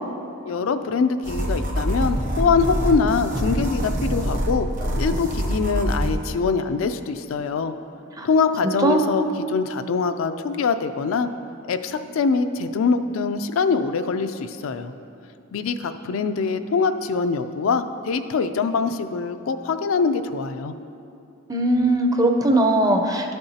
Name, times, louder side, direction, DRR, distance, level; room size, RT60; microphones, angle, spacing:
voice 1, 0.4-4.7 5.0-7.7 8.2-11.3 11.7-14.9 15.5-20.7, left 4 dB, 75° left, 9 dB, 0.4 m, -23 dB
sound 1, 1.2-6.1, equal, 40° right, 0.8 m, -25 dB
voice 2, 21.5-23.3, right 1 dB, 15° right, 4 dB, 0.5 m, -19 dB
12.0 x 6.8 x 2.8 m, 2.6 s
head